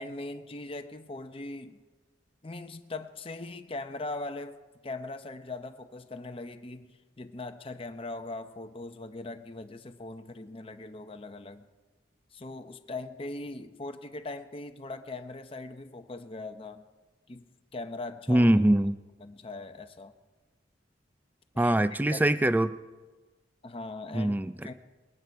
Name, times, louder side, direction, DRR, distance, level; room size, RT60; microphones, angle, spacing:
voice 1, 0.0-1.8 2.4-4.6 4.8-11.7 12.3-16.8 17.3-17.5 17.7-18.5 19.2-20.1 21.5-21.8 22.1-22.3 23.6-24.4 24.6-24.7, left 2 dB, 30° left, 8 dB, 0.7 m, -40 dB
voice 2, 18.3-19.0 21.6-22.8 24.1-24.7, right 1 dB, 10° right, 13 dB, 0.3 m, -23 dB
21.0 x 9.3 x 4.6 m, 1.3 s
head